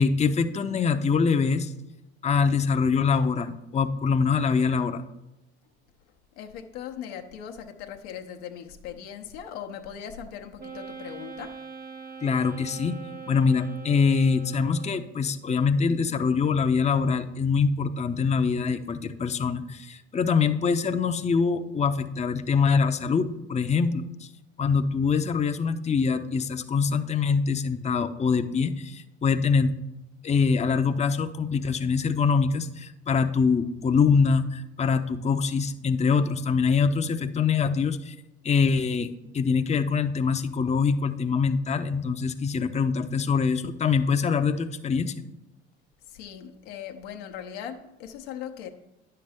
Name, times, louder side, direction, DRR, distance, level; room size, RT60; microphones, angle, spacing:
voice 1, 0.0-1.7 2.2-5.0 12.2-13.0 13.3-24.3 24.6-29.7 30.2-38.1 38.4-39.1 39.3-45.2, left 5 dB, 20° left, 9 dB, 0.6 m, -24 dB
voice 2, 6.3-11.6 46.0-48.7, left 9 dB, 80° left, 5 dB, 0.9 m, -39 dB
Wind instrument woodwind instrument, 10.6-15.2, right 5 dB, 30° right, 0.8 m, -42 dB
10.0 x 6.8 x 3.5 m, 0.93 s
hypercardioid pair, 60°, 33 cm